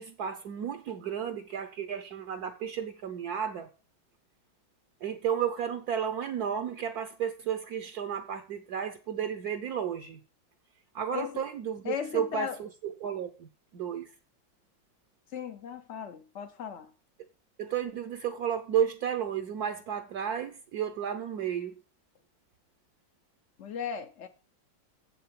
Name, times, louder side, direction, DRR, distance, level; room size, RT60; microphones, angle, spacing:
voice 1, 0.0-3.7 5.0-10.2 10.9-14.1 17.6-21.8, right 8 dB, 65° right, 1.2 m, -33 dB
voice 2, 11.8-12.6 15.3-16.9 23.6-24.3, left 8 dB, 60° left, 0.8 m, -36 dB
7.7 x 6.8 x 7.5 m
omnidirectional pair, 2.0 m